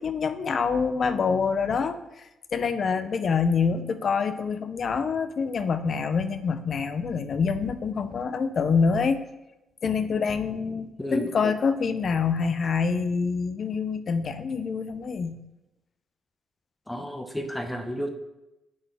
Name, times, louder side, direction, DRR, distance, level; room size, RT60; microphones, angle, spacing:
voice 1, 0.0-2.0 2.5-9.2 9.8-15.4, left 5 dB, 50° left, 11 dB, 0.6 m, -26 dB
voice 2, 11.0-11.5 16.9-18.1, equal, 10° left, 6 dB, 0.8 m, -31 dB
9.9 x 4.1 x 3.4 m, 0.94 s
cardioid pair, 90°, 0 cm